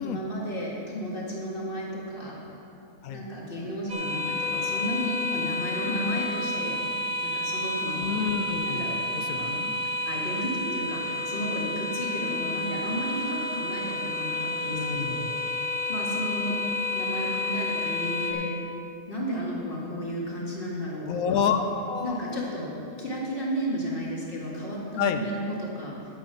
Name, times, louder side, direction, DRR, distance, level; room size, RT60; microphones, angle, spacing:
voice 1, 0.0-2.4 3.1-6.7 7.2-8.1 8.6-9.0 9.3-9.6 10.1-15.6 15.9-16.6 16.9-18.5 19.1-21.4 22.0-22.7 23.0-25.9, equal, 40° left, -4 dB, 2.0 m, -33 dB
sound 1, 3.9-18.3, left 2 dB, 35° right, 1.3 m, -30 dB
voice 2, 8.0-8.9 9.2-9.8 14.7-15.3 21.1-22.5 25.0-25.2, left 6 dB, 90° left, 7 dB, 1.2 m, -29 dB
9.2 x 8.8 x 5.8 m, 2.7 s
omnidirectional pair, 1.5 m